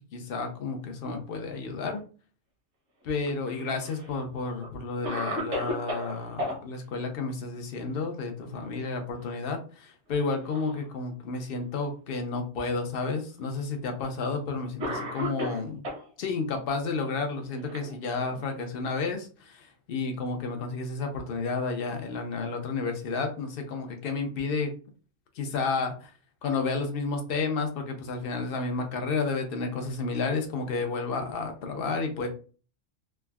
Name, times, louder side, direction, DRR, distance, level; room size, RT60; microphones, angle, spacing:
voice 1, 0.1-2.0 3.0-15.9 16.2-24.7 25.4-26.1 26.4-32.3, left 4 dB, 60° left, 4 dB, 0.7 m, -31 dB
Cough, 3.3-4.1 4.6-4.7 5.0-6.6 8.4-8.9 9.2-9.3 10.1-10.8 11.6-11.7 12.8-12.9 14.0-14.2 14.8-16.1 17.0-18.5, equal, 65° right, 1.2 m, -35 dB
3.3 x 2.1 x 2.2 m, 0.37 s
omnidirectional pair, 1.4 m